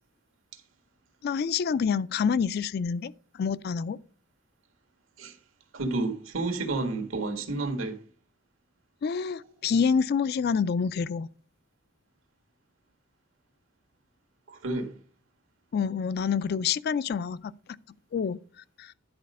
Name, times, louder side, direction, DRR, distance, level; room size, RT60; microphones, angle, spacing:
voice 1, 1.2-4.0 9.0-11.3 15.7-17.5 18.1-18.4 18.8-18.9, left 6 dB, 50° left, 0.3 m, -27 dB
voice 2, 5.7-8.0 9.3-9.5 14.5-14.9, right 2 dB, 85° right, 1.5 m, -31 dB
10.5 x 4.2 x 5.3 m
head